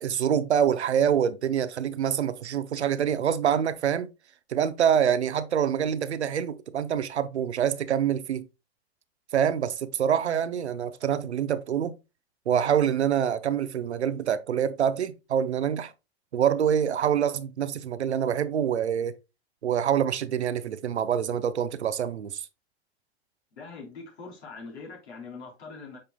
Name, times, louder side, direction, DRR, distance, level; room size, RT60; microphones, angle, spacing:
voice 1, 0.0-4.1 4.5-8.5 9.3-11.9 12.5-15.9 16.3-19.1 19.6-22.5, right 8 dB, 90° right, 0.7 m, -26 dB
voice 2, 23.6-26.0, left 4 dB, 80° left, 3.7 m, -42 dB
8.7 x 5.7 x 2.2 m
hypercardioid pair, 95°, 32 cm